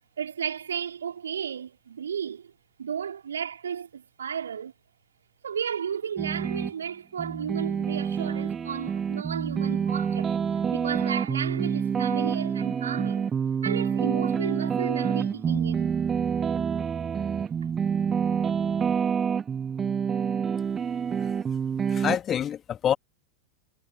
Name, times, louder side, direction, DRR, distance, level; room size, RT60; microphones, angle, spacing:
voice 1, 0.2-2.5 2.8-4.7 5.4-10.3 10.7-13.3 13.6-16.0, right 8 dB, 70° right, 2.8 m, -33 dB
sound 1, 6.2-6.7 7.2-22.2, right 7 dB, 20° right, 1.0 m, -27 dB
voice 2, 21.9-22.9, left 9 dB, 25° left, 2.0 m, -27 dB
figure-of-eight pair, 90°, 0 cm